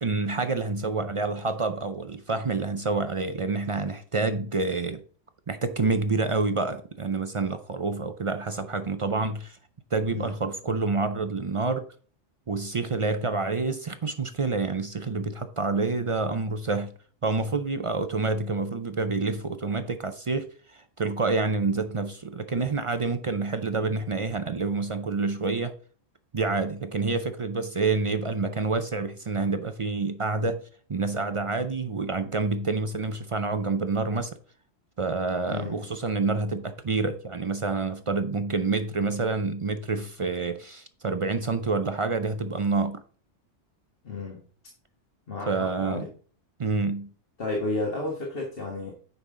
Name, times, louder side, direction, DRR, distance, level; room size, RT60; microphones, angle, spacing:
voice 1, 0.0-5.0 5.5-9.6 9.9-11.8 12.5-16.9 17.2-25.7 26.3-30.6 30.9-34.3 35.0-43.0 45.5-46.1 46.6-47.1, right 3 dB, 50° right, 0.4 m, -28 dB
voice 2, 35.5-35.9 44.0-44.4 45.3-46.1 47.4-48.9, left 2 dB, 50° left, 1.7 m, -32 dB
9.5 x 5.6 x 3.8 m
omnidirectional pair, 1.3 m